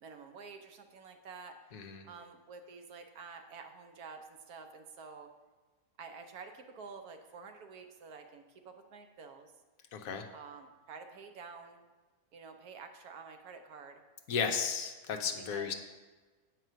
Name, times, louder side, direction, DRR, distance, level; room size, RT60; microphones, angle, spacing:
voice 1, 0.0-5.3 6.0-9.5 10.3-11.8 12.3-14.0 15.5-15.7, right 5 dB, 85° right, 6 dB, 1.3 m, -49 dB
voice 2, 1.7-2.1 9.9-10.3 14.3-15.7, left 6 dB, 70° left, 5 dB, 1.2 m, -34 dB
7.7 x 4.7 x 6.2 m, 1.3 s
omnidirectional pair, 1.6 m